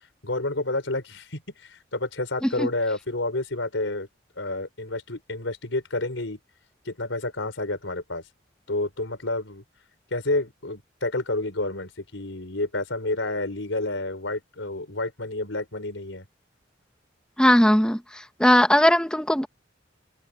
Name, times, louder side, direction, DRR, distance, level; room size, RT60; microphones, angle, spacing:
voice 1, 0.2-4.1 4.4-6.4 6.8-8.2 8.7-9.6 10.1-16.3, left 2 dB, 80° left, 4.5 m, -29 dB
voice 2, 17.4-18.0 18.4-19.5, equal, 5° left, 0.8 m, -18 dB
head